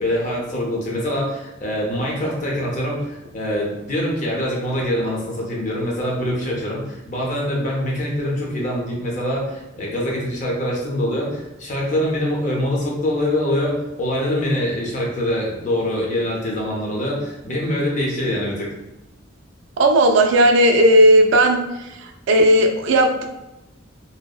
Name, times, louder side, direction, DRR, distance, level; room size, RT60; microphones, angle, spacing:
voice 1, 0.0-18.7, left 1 dB, 40° left, -2 dB, 0.6 m, -24 dB
voice 2, 19.8-21.6 22.0-23.3, right 1 dB, 65° right, 4 dB, 0.3 m, -14 dB
2.7 x 2.0 x 2.3 m, 0.98 s
head